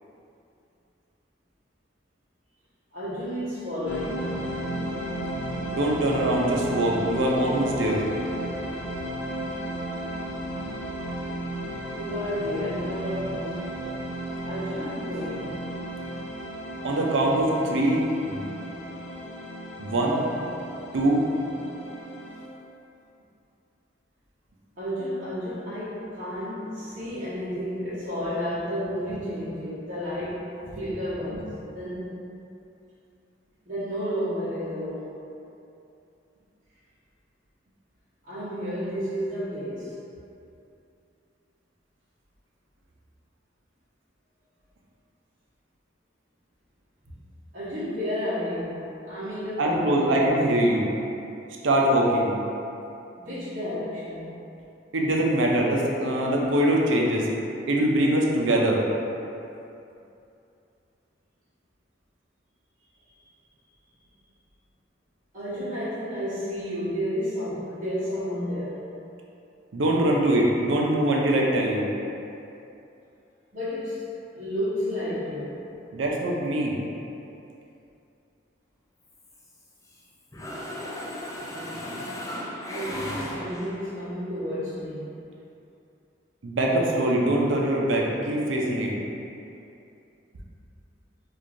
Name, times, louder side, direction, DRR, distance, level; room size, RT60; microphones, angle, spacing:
voice 1, 2.9-4.4 11.8-13.6 14.4-15.6 24.8-30.5 30.7-31.5 31.7-32.1 33.7-35.2 38.2-40.0 47.5-50.2 53.2-54.3 65.3-68.8 73.5-74.0 74.3-75.6 82.7-85.1, equal, 50° right, -13 dB, 0.9 m, -31 dB
sound 1, 3.9-22.5, right 1 dB, 70° left, 0.5 m, -34 dB
voice 2, 5.7-8.0 16.8-18.4 19.8-20.2 20.9-21.2 31.3-31.4 49.6-50.8 51.6-52.3 54.9-57.2 57.7-58.8 69.7-71.8 75.9-76.7 86.4-88.9, right 1 dB, 85° right, -2 dB, 0.5 m, -23 dB
Mechanisms, 79.1-80.0 80.3-83.9, left 1 dB, 15° left, 0.4 m, -36 dB
4.6 x 2.4 x 2.5 m, 2.7 s
head